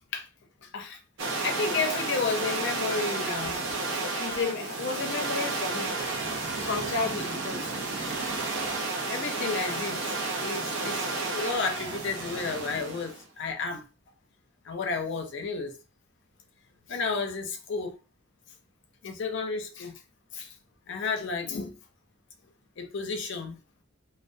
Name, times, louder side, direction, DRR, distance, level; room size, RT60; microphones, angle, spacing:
voice 1, 0.6-1.0 1.4-3.6 4.0-5.9 6.7-7.8 9.1-10.0 10.4-13.8 14.7-15.8 16.9-17.9 19.0-19.9 20.3-20.5 20.9-21.7 22.8-23.6, left 4 dB, 60° left, 0.5 m, -32 dB
sound 1, 1.2-13.2, right 3 dB, 65° right, 0.6 m, -32 dB
2.2 x 2.2 x 2.5 m
head